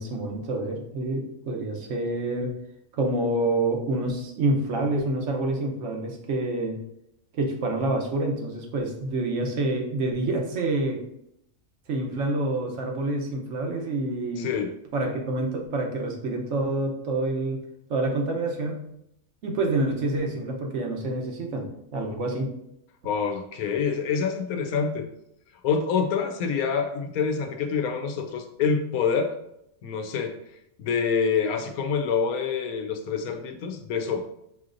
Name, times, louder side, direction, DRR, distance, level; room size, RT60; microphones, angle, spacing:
voice 1, 0.0-2.5 2.9-6.8 7.3-11.0 11.9-14.5 14.9-17.6 17.9-18.8 19.4-21.7 21.9-22.5, right 2 dB, 60° right, 2 dB, 1.1 m, -27 dB
voice 2, 14.4-14.7 23.0-25.1 25.6-29.3 29.8-30.3 30.8-34.2, left 6 dB, 90° left, 6 dB, 1.1 m, -26 dB
6.2 x 2.9 x 2.5 m, 0.78 s
omnidirectional pair, 1.5 m